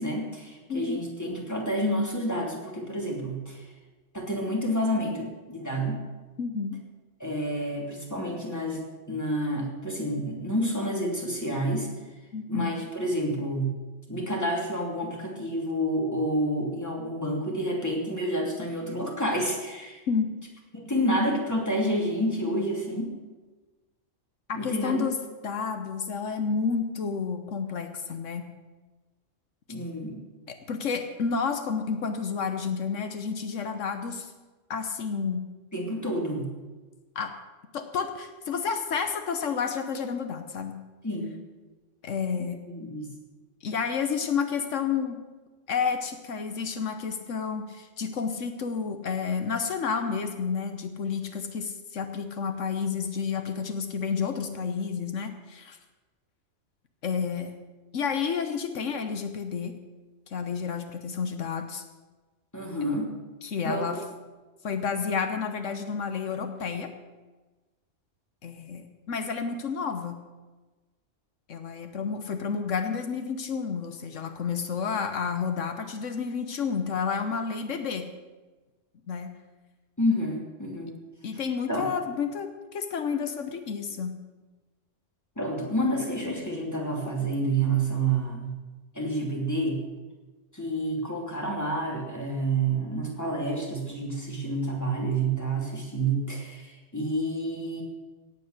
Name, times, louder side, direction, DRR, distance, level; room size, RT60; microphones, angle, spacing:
voice 1, 0.0-3.7 4.1-6.0 7.2-8.8 9.1-11.9 12.5-13.8 14.1-20.0 20.7-23.1 24.5-25.0 29.7-30.2 35.7-36.5 41.0-41.3 42.4-43.1 62.5-63.1 63.6-64.0 80.0-81.0 81.7-81.9 85.4-88.6 88.9-89.8 90.5-97.8, right 1 dB, 15° left, -1 dB, 2.8 m, -29 dB
voice 2, 0.7-1.0 6.4-6.8 12.3-12.7 20.1-20.3 24.5-25.2 25.4-28.5 30.5-34.3 34.7-35.5 37.1-37.3 37.7-40.7 42.0-42.6 43.6-45.2 45.7-55.8 57.0-57.5 57.9-59.7 60.3-61.8 63.4-64.0 64.6-66.9 68.4-70.2 71.5-78.1 79.1-79.3 81.2-84.2, left 6 dB, 80° left, 7 dB, 1.4 m, -30 dB
17.0 x 8.5 x 6.6 m, 1.2 s
omnidirectional pair, 1.3 m